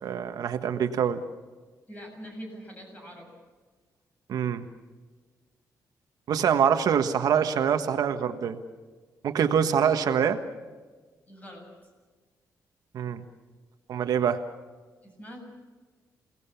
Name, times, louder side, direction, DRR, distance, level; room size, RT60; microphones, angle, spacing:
voice 1, 0.0-1.2 4.3-4.6 6.3-8.6 9.2-10.4 12.9-13.2 13.9-14.4, right 8 dB, 70° right, 7 dB, 1.4 m, -25 dB
voice 2, 1.9-3.3 11.3-11.7 15.0-15.4, equal, 25° left, 2 dB, 7.5 m, -43 dB
28.0 x 18.5 x 7.1 m, 1.4 s
wide cardioid pair, 155°, 7 cm